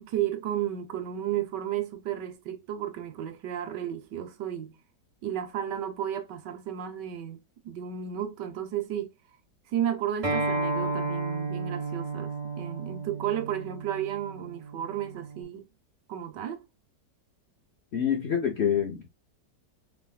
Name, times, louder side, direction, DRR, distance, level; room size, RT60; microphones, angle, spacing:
voice 1, 0.0-4.8 5.2-9.1 9.7-15.7 16.1-16.6, right 10 dB, 80° right, 1.4 m, -33 dB
Acoustic guitar, 10.2-15.4, right 2 dB, 45° right, 2.1 m, -32 dB
voice 2, 17.9-19.1, left 8 dB, 60° left, 0.7 m, -26 dB
4.0 x 3.9 x 2.2 m
omnidirectional pair, 1.9 m